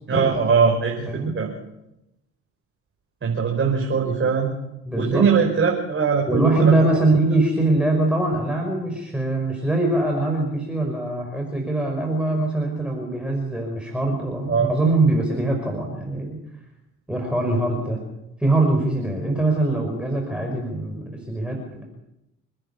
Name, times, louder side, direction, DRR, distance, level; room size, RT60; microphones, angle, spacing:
voice 1, 0.1-1.1 1.4-1.5 3.2-4.5 5.0-6.7 14.5-14.7, right 5 dB, 35° right, 0 dB, 5.2 m, -21 dB
voice 2, 4.9-5.3 6.3-16.4 17.1-18.0 18.4-21.8, right 2 dB, 5° right, 0 dB, 5.9 m, -22 dB
28.5 x 10.5 x 8.6 m, 0.88 s
hypercardioid pair, 65°, 35 cm